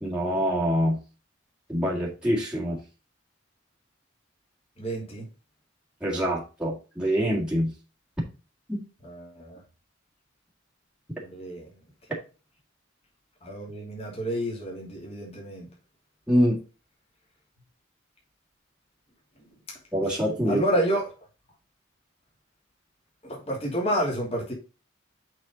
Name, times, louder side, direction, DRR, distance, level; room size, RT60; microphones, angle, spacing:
voice 1, 0.0-1.0 1.7-2.8 6.0-7.7 8.7-8.8 16.3-16.6 19.9-20.6, equal, 5° right, 1.9 m, -25 dB
voice 2, 4.8-5.2 9.0-9.6 11.2-11.7 13.4-15.6 20.5-21.1 23.2-24.5, equal, 30° left, 3.0 m, -29 dB
6.5 x 5.8 x 3.9 m
head